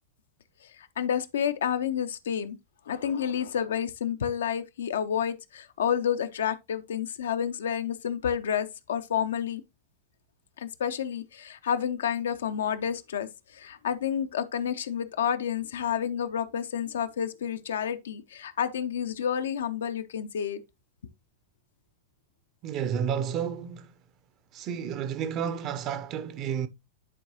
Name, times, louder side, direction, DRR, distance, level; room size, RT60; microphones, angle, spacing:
voice 1, 0.8-2.6 2.9-9.6 10.6-20.6, left 8 dB, 65° left, 0.7 m, -30 dB
voice 2, 22.6-23.9 24.5-26.7, right 8 dB, 35° right, 0.9 m, -31 dB
10.0 x 4.6 x 3.0 m
figure-of-eight pair, 90°, 0 cm